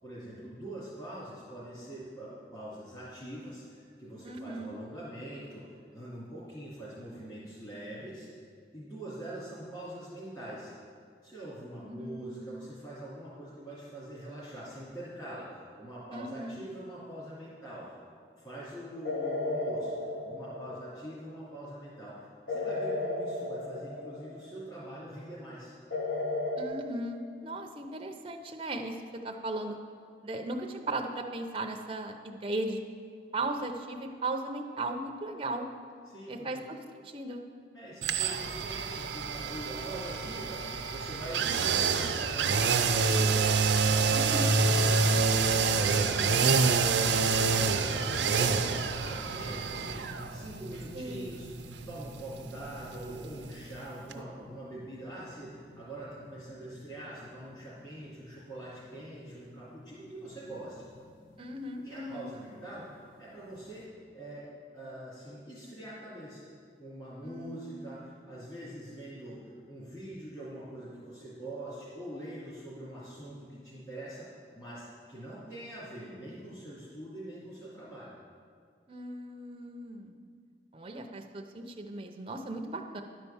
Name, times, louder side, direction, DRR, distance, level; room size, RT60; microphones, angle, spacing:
voice 1, 0.0-8.3 8.7-10.7 11.2-17.9 18.4-20.0 20.2-25.7 36.1-36.6 37.7-51.5 51.9-60.8 61.8-63.9 64.1-66.5 66.8-74.3 74.5-78.1, right 1 dB, 20° left, -11 dB, 2.3 m, -44 dB
voice 2, 4.2-4.7 11.9-12.7 16.1-16.6 26.6-29.0 29.2-29.8 30.2-32.8 33.3-35.7 36.3-37.4 44.1-44.5 50.9-51.4 61.4-62.3 67.2-68.0 78.9-80.2 80.7-83.0, right 2 dB, 30° right, 3 dB, 0.6 m, -37 dB
sound 1, 19.0-21.1 22.5-24.5 25.9-26.6, left 2 dB, 70° left, 1.8 m, -34 dB
sound 2, 38.0-53.8 54.1-54.2, right 4 dB, 85° right, 0.6 m, -28 dB
sound 3, 44.1-63.9, left 2 dB, 50° left, 0.8 m, -47 dB
10.5 x 4.5 x 7.0 m, 2.2 s
head